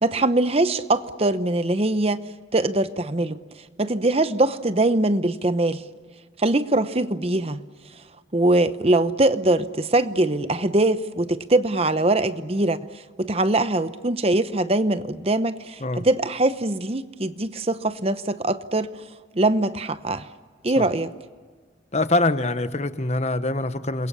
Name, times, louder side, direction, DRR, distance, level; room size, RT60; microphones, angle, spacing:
voice 1, 0.0-2.2 2.5-3.4 3.8-5.8 6.4-7.6 8.3-12.8 13.2-18.9 19.3-20.3 20.6-21.1, right 2 dB, 30° right, 0.8 m, -22 dB
voice 2, 21.9-24.1, left 2 dB, 35° left, 1.1 m, -24 dB
28.5 x 22.5 x 8.5 m
head